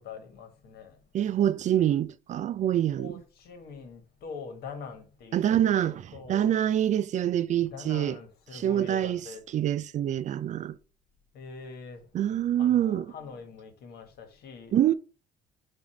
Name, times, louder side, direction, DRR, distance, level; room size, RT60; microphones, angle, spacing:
voice 1, 0.0-1.0 3.0-6.5 7.6-9.4 11.3-12.0 12.6-14.7, left 5 dB, 70° left, 1.5 m, -44 dB
voice 2, 1.1-3.1 5.3-6.0 6.3-8.2 8.5-9.2 9.5-10.8 12.1-13.1 14.7-14.9, right 11 dB, 45° right, 0.4 m, -25 dB
7.2 x 2.7 x 4.9 m
cardioid pair, 110°, 17 cm